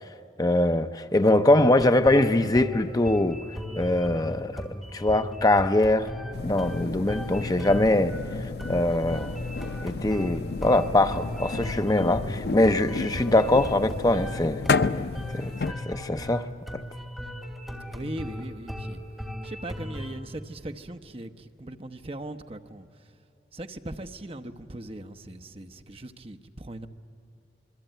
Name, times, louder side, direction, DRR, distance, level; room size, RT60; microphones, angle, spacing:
voice 1, 0.4-3.4 3.8-6.1 6.4-8.2 8.7-9.4 9.8-14.6 15.3-16.5, left 1 dB, 20° left, 0.6 m, -23 dB
sound 1, 1.6-20.2, left 1 dB, ahead, 2.6 m, -37 dB
sound 2, 6.3-15.7, left 4 dB, 60° left, 0.5 m, -32 dB
voice 2, 6.7-7.0 17.9-19.0 19.4-22.9 23.5-26.9, right 1 dB, 30° right, 0.9 m, -39 dB
26.0 x 23.0 x 9.2 m
head